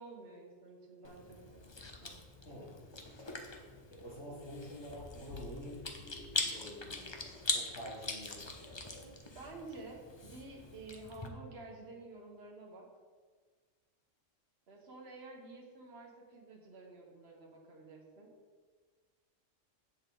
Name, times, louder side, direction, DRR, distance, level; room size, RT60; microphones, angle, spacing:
voice 1, 0.0-2.2 9.3-12.9 14.7-18.3, right 2 dB, 55° right, -1 dB, 1.5 m, -51 dB
Chewing mastication, 1.0-11.3, left 3 dB, 25° left, 0.6 m, -42 dB
voice 2, 2.4-2.8 3.9-8.6, equal, 60° left, -5 dB, 2.5 m, -48 dB
7.9 x 7.1 x 3.8 m, 1.5 s
omnidirectional pair, 1.4 m